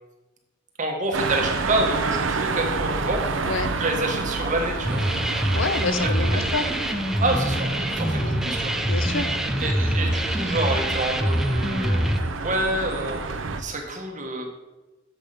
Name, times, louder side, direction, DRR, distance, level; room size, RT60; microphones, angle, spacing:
voice 1, 0.8-3.3 3.8-5.0 6.3-6.4 7.2-8.7 9.6-12.1 12.4-13.2 13.6-14.5, right 2 dB, 40° right, 2 dB, 1.4 m, -27 dB
sound 1, 1.1-13.6, right 4 dB, 80° right, 0.7 m, -30 dB
sound 2, 4.8-12.2, equal, ahead, 0.5 m, -25 dB
voice 2, 5.5-6.7 8.1-8.4 8.9-9.3, left 4 dB, 90° left, 10 dB, 0.7 m, -28 dB
7.3 x 6.2 x 5.0 m, 1.1 s
head